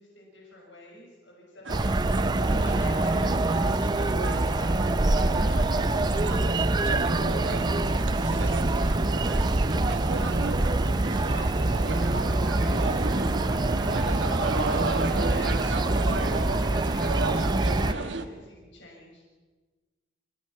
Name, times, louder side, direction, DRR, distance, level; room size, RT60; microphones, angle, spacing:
voice 1, 0.0-5.5 5.8-11.7 12.1-19.2, left 1 dB, 75° left, -2 dB, 6.5 m, -47 dB
sound 1, 1.6-18.2, right 3 dB, 80° right, 1.4 m, -33 dB
sound 2, 1.7-17.9, right 2 dB, 25° right, 0.5 m, -25 dB
29.5 x 16.5 x 5.8 m, 1.3 s
head